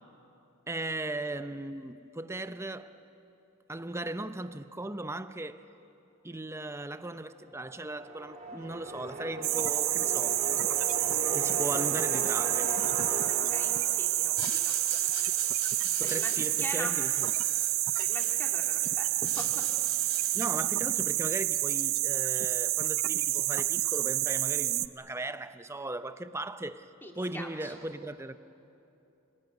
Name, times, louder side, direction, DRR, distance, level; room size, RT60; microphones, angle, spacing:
voice 1, 0.7-3.0 3.7-5.6 6.2-10.4 11.2-12.7 16.0-17.3 20.3-26.9 27.1-28.4, right 2 dB, 15° right, 0.6 m, -37 dB
sound 1, 7.5-15.3, right 1 dB, 35° right, 3.0 m, -39 dB
sound 2, 9.4-24.9, right 15 dB, 70° right, 0.6 m, -28 dB
voice 2, 13.5-14.8 16.0-16.9 18.0-19.5 27.0-27.7, left 1 dB, 10° left, 2.6 m, -42 dB
sound 3, 14.2-18.7 19.0-20.7, left 7 dB, 80° left, 2.8 m, -46 dB
28.5 x 20.0 x 9.4 m
head